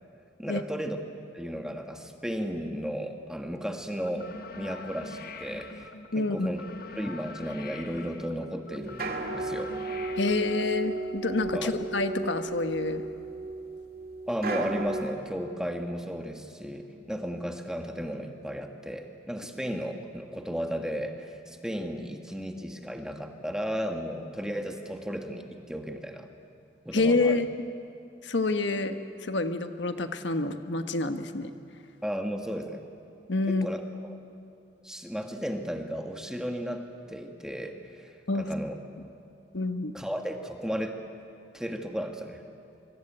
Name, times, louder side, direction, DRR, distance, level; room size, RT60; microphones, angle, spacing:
voice 1, 0.4-1.0 1.3-4.3 4.6-6.6 6.9-9.7 11.5-11.7 14.3-26.3 26.8-27.4 32.0-32.8 33.5-33.8 34.8-38.7 39.9-41.0 41.5-42.4, equal, 5° right, 4 dB, 1.5 m, -34 dB
sound 1, 4.0-11.1, left 3 dB, 55° left, 1.4 m, -44 dB
voice 2, 6.1-6.5 10.2-13.0 26.9-27.5 28.2-31.5 33.3-33.7 38.3-38.4 39.5-39.9, left 3 dB, 80° left, 8 dB, 1.4 m, -27 dB
sound 2, 8.8-15.1, right 3 dB, 55° right, 2.3 m, -34 dB
25.0 x 24.5 x 9.2 m, 2.6 s
head